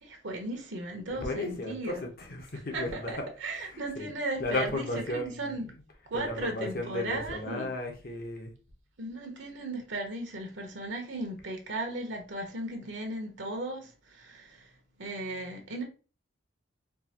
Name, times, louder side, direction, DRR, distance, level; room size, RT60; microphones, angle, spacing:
voice 1, 0.0-2.0 2.7-5.7 6.1-7.7 9.0-14.7 15.0-15.8, right 2 dB, 65° right, 0.9 m, -36 dB
voice 2, 1.1-3.1 3.6-4.1 4.4-5.6 6.1-8.5, left 2 dB, 50° left, 0.9 m, -34 dB
4.6 x 2.5 x 2.8 m
head